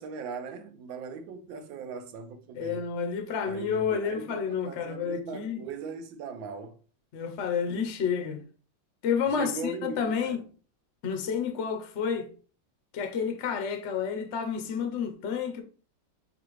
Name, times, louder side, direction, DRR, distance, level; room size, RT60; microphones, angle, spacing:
voice 1, 0.0-2.8 3.4-6.8 9.3-10.4, right 4 dB, 85° right, 1.4 m, -39 dB
voice 2, 2.6-5.6 7.1-8.4 9.0-10.5 11.0-12.3 12.9-15.6, left 6 dB, 60° left, 0.7 m, -30 dB
6.6 x 2.5 x 3.1 m
omnidirectional pair, 2.1 m